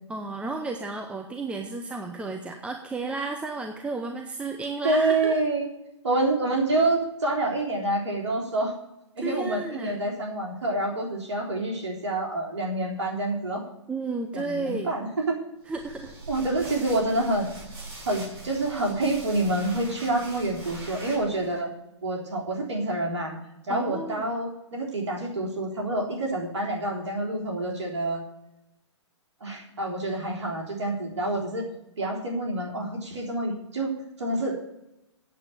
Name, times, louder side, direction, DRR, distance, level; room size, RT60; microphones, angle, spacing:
voice 1, 0.1-5.4 9.2-9.9 13.9-14.9 15.7-16.1 23.7-24.3, right 3 dB, 5° right, 4 dB, 0.8 m, -33 dB
voice 2, 4.8-5.7 6.0-8.7 9.2-13.6 14.3-15.4 16.3-17.5 18.1-21.7 22.0-23.4 23.6-28.3 29.4-31.7 32.0-33.9 34.2-34.6, right 2 dB, 70° right, 0 dB, 3.7 m, -27 dB
sound 1, 15.7-21.6, right 2 dB, 55° right, 5.7 m, -42 dB
8.5 x 8.2 x 8.9 m, 0.89 s
hypercardioid pair, 135°, 15 cm